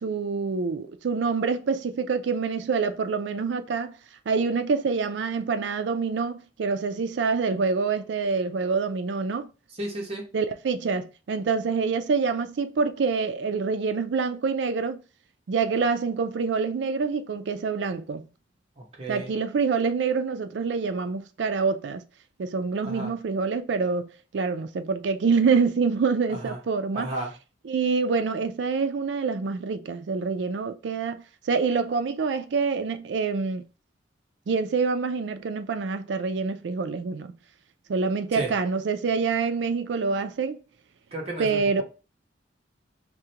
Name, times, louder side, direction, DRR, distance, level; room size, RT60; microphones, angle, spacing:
voice 1, 0.0-4.0 4.3-9.5 10.3-15.0 15.5-18.2 19.1-22.0 22.4-27.1 27.6-33.7 34.5-37.3 37.9-40.6 41.4-41.8, right 5 dB, 70° right, 0.4 m, -26 dB
voice 2, 9.8-10.2 18.8-19.3 22.8-23.1 26.3-26.6 26.9-27.3 38.3-38.5 41.1-41.8, right 2 dB, 35° right, 1.0 m, -33 dB
4.8 x 2.2 x 2.8 m
head